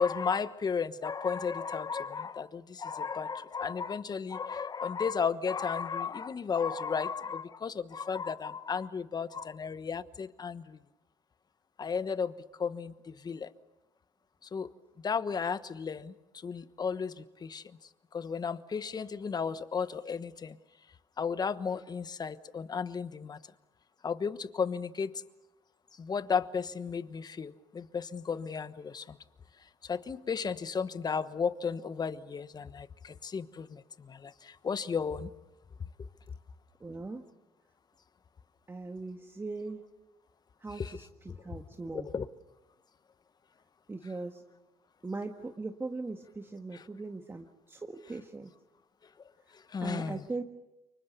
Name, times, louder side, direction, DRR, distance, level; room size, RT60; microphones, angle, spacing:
voice 1, 0.0-10.8 11.8-13.5 14.4-14.7 15.0-17.8 18.1-20.6 21.2-23.4 24.0-25.2 25.9-29.2 29.6-35.3 40.8-41.0 41.3-41.4 41.9-42.3 46.7-46.8 49.5-50.3, left 6 dB, 35° left, 14 dB, 1.2 m, -34 dB
voice 2, 36.8-37.2 38.7-39.8 40.6-41.1 41.4-42.1 43.9-44.4 45.0-48.5 49.8-50.4, right 3 dB, 20° right, 4 dB, 1.7 m, -39 dB
29.0 x 24.5 x 6.8 m, 1.0 s
supercardioid pair, 80°, 11 cm